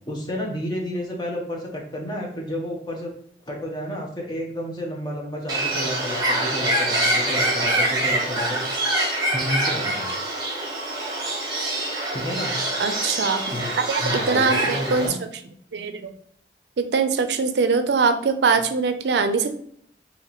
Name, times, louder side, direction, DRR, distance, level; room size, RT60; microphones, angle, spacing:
voice 1, 0.1-3.1 3.5-8.6 9.3-10.1 12.1-12.6 13.5-13.7 14.0-15.1, left 1 dB, 25° left, 0 dB, 0.8 m, -30 dB
Bird, 5.5-15.1, right 1 dB, 25° right, 1.0 m, -25 dB
voice 2, 12.8-13.4 13.9-15.1 15.7-16.0 16.8-19.6, right 5 dB, 75° right, 8 dB, 0.4 m, -22 dB
2.9 x 2.9 x 4.0 m, 0.64 s
head